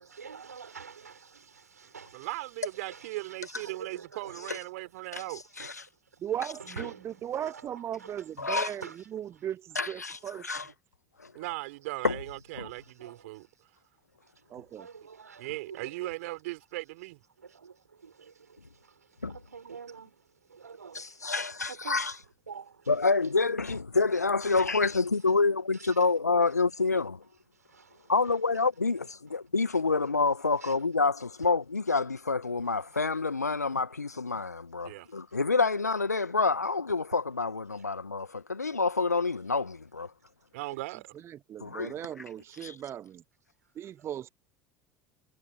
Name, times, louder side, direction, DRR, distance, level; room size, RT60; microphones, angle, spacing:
voice 1, 0.0-10.7 12.6-13.6 14.2-16.2 17.4-23.4 24.9-25.4 25.7-26.1 27.5-28.4 29.3-29.5 30.6-30.8 31.4-31.5 32.6-33.2 35.3-35.4 37.8-37.9 40.2-40.3 42.4-42.7 43.6-44.1, right 6 dB, 80° right, 5.7 m, -49 dB
voice 2, 2.1-5.4 11.3-13.4 15.4-17.2 34.8-35.1 40.5-41.1, right 21 dB, 60° right, 4.1 m, -38 dB
voice 3, 6.2-8.8 9.1-10.5 14.5-14.8 41.2-43.2 43.8-44.3, right 10 dB, 30° right, 0.4 m, -37 dB
voice 4, 8.4-8.7 9.7-10.7 11.2-11.3 12.0-12.2 12.6-12.7 19.2-19.3 21.2-22.1 22.9-27.2 28.1-40.1 41.6-42.2 42.6-42.8, left 4 dB, 85° left, 1.4 m, -28 dB
figure-of-eight pair, 70°, 9 cm